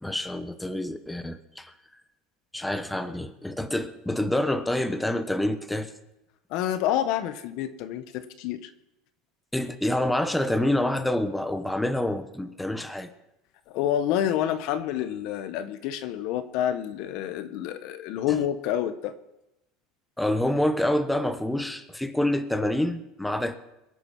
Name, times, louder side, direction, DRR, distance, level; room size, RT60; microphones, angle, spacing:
voice 1, 0.0-1.7 2.5-5.9 9.5-13.1 20.2-23.6, left 1 dB, 5° left, 9 dB, 1.0 m, -27 dB
voice 2, 6.5-8.7 13.7-19.1, left 11 dB, 60° left, 11 dB, 1.2 m, -28 dB
22.5 x 7.9 x 6.0 m, 0.92 s
supercardioid pair, 130°, 0 cm